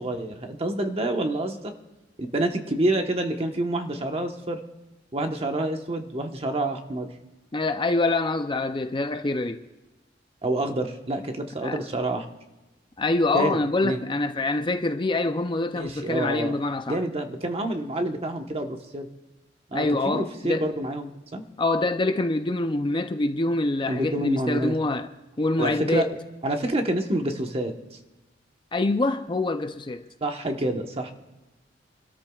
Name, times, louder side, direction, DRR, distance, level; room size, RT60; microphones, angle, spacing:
voice 1, 0.0-1.6 2.2-4.6 5.1-7.1 10.4-12.3 13.3-13.6 13.8-14.0 15.7-16.6 16.9-19.1 19.7-21.4 23.9-24.8 25.6-26.1 26.4-27.7 30.2-31.1, right 1 dB, 35° right, 1.2 m, -27 dB
voice 2, 7.5-9.6 11.6-11.8 13.0-17.0 19.7-20.6 21.6-25.1 25.4-26.1 28.7-30.1, left 2 dB, 25° left, 0.5 m, -25 dB
28.5 x 13.0 x 2.4 m
head